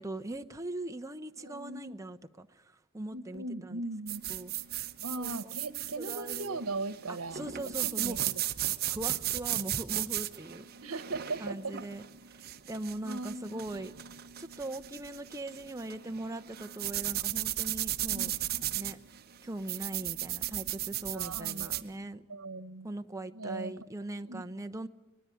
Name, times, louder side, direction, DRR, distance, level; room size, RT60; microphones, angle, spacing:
voice 1, 0.0-3.8 4.3-4.5 5.2-5.5 6.0-6.6 7.1-8.2 8.8-10.7 11.4-12.0 12.3-13.9 14.4-18.3 18.7-19.0 19.4-22.2 22.8-24.9, right 2 dB, 15° right, 6 dB, 0.8 m, -40 dB
voice 2, 1.4-2.0 3.1-4.2 5.0-7.5 8.0-8.4 9.5-9.6 10.8-11.8 13.0-13.6 18.1-18.3 18.7-18.8 21.1-22.0 22.3-22.9 23.3-23.7 24.2-24.4, right 2 dB, 80° right, 14 dB, 1.2 m, -39 dB
sound 1, 4.1-21.9, right 13 dB, 45° right, 0.9 m, -36 dB
24.0 x 20.5 x 9.3 m, 1.0 s
head